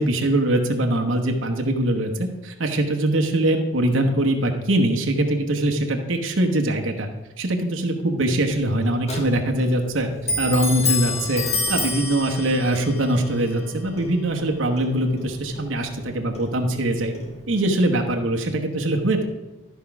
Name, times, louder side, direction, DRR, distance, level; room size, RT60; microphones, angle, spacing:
voice 1, 0.0-7.1 7.4-10.1 10.4-17.1 17.5-19.3, right 1 dB, 65° right, 3 dB, 1.0 m, -22 dB
Clock, 8.5-17.8, left 2 dB, 30° left, 1.4 m, -30 dB
13.0 x 4.5 x 5.9 m, 1.1 s
head